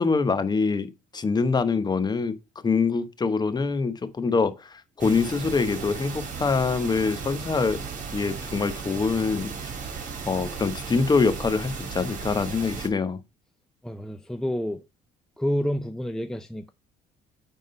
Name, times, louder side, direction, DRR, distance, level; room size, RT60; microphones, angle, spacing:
voice 1, 0.0-2.4 2.6-7.8 8.1-9.7 10.3-13.2, left 4 dB, 25° left, 1.0 m, -25 dB
sound 1, 5.0-12.9, right 5 dB, 50° right, 2.8 m, -35 dB
voice 2, 13.8-14.8 15.4-16.7, equal, 5° left, 0.5 m, -29 dB
9.4 x 3.7 x 5.3 m
cardioid pair, 110°, 17 cm